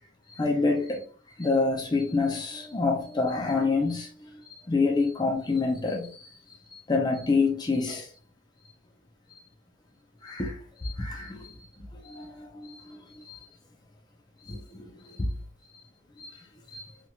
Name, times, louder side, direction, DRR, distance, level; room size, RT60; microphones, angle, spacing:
voice 1, 0.4-1.0 1.4-4.1 4.7-6.1 6.9-8.1 10.2-10.6 10.8-11.5 12.0-13.0 13.3-13.4 14.5-14.9 15.2-15.3 16.2-16.3 16.7-16.8, left 3 dB, 20° left, 0.5 m, -27 dB
2.9 x 2.8 x 2.3 m
head